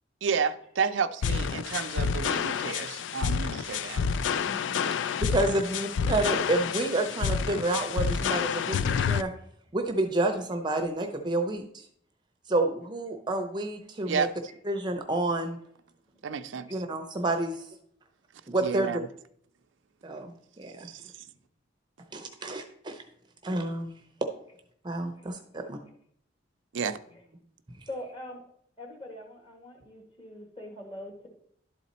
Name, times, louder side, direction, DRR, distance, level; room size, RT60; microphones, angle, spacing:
voice 1, 0.2-4.0 14.1-14.3 16.2-16.8 18.6-19.0 20.8-21.0 26.7-27.0, right 6 dB, 85° right, 0.5 m, -31 dB
sound 1, 1.2-9.2, left 6 dB, 75° left, 0.3 m, -29 dB
voice 2, 4.4-9.3 9.7-11.9 12.5-14.3 14.7-15.6 16.7-17.7 18.5-18.9 20.0-20.3 20.6-20.9 22.1-23.0 23.4-23.9 24.2-24.3 24.8-25.8, right 2 dB, 25° right, 0.6 m, -29 dB
voice 3, 27.9-28.4 28.8-31.3, left 1 dB, 30° left, 1.7 m, -42 dB
11.5 x 4.2 x 4.1 m
head